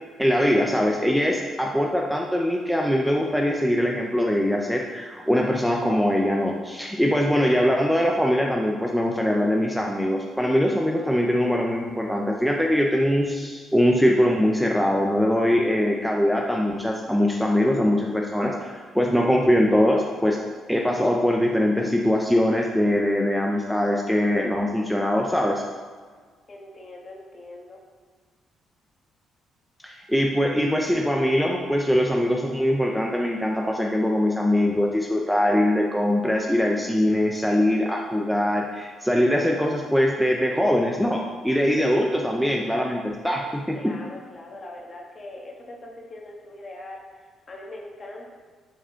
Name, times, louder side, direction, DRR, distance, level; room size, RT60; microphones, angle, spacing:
voice 1, 0.2-20.4 20.7-25.6 29.8-43.8, equal, ahead, -1 dB, 0.7 m, -22 dB
voice 2, 26.5-27.8 43.7-48.3, left 2 dB, 35° left, -1 dB, 1.7 m, -41 dB
7.8 x 4.2 x 5.1 m, 1.5 s
cardioid pair, 90°, 0 cm